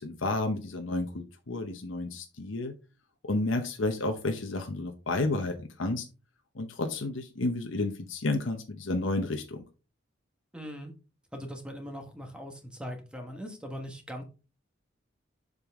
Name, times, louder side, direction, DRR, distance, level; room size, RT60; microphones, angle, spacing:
voice 1, 0.0-2.7 3.2-6.0 6.5-9.6, left 2 dB, 90° left, 5 dB, 0.9 m, -31 dB
voice 2, 10.5-10.9 11.3-14.2, equal, 5° right, 3 dB, 1.3 m, -40 dB
7.1 x 5.4 x 3.6 m, 0.32 s
head